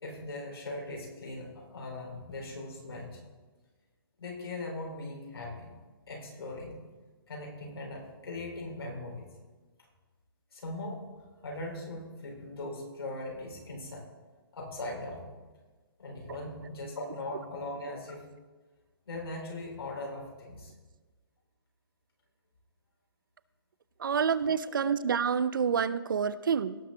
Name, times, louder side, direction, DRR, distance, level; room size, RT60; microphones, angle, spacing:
voice 1, 0.0-3.2 4.2-5.7 6.1-6.8 7.3-9.3 10.5-11.1 11.4-14.1 14.5-15.3 16.0-18.3 19.1-20.7 24.8-24.9, left 2 dB, 90° left, -1 dB, 4.2 m, -40 dB
voice 2, 24.0-26.8, right 6 dB, 60° right, 16 dB, 0.5 m, -28 dB
17.5 x 6.6 x 3.9 m, 1.3 s
hypercardioid pair, 175°, 12 cm